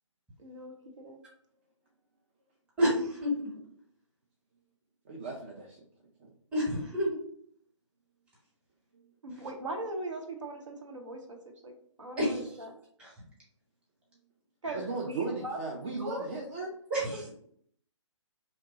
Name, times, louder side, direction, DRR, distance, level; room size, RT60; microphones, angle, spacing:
voice 1, 0.4-1.2 9.2-12.7 14.6-15.6 16.0-16.2, right 2 dB, 75° right, 2 dB, 0.8 m, -39 dB
voice 2, 2.8-3.3 6.5-7.1 12.2-12.4 13.0-13.1 16.9-17.3, equal, 5° right, -6 dB, 1.0 m, -28 dB
voice 3, 5.1-5.8 6.2-6.3 8.9-9.0 14.7-16.7, right 2 dB, 25° right, -2 dB, 0.4 m, -37 dB
2.9 x 2.2 x 3.7 m, 0.64 s
figure-of-eight pair, 140°, 16 cm